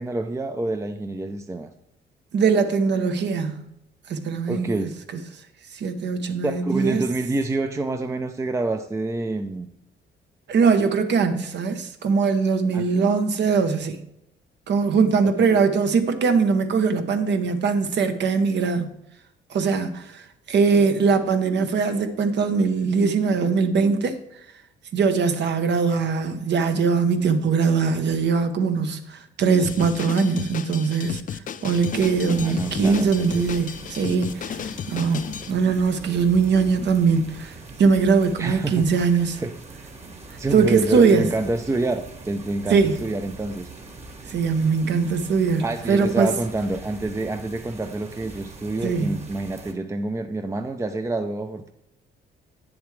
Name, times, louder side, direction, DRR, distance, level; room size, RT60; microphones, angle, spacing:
voice 1, 0.0-1.7 4.5-4.9 6.4-9.7 12.7-12.9 32.4-33.4 38.4-38.8 39.4-39.5 40.4-43.7 45.6-51.7, right 2 dB, 15° right, 0.5 m, -27 dB
voice 2, 2.3-3.7 4.1-4.9 5.7-7.0 10.5-14.0 14.7-18.9 19.5-24.2 24.9-39.4 40.5-41.3 42.7-43.0 44.3-46.3 48.8-49.2, right 5 dB, 60° right, 1.0 m, -21 dB
Drum kit, 29.6-35.5, left 8 dB, 40° left, 0.5 m, -33 dB
sound 1, 31.7-49.7, right 3 dB, 35° right, 1.6 m, -42 dB
8.6 x 7.1 x 3.2 m
cardioid pair, 90°, 20 cm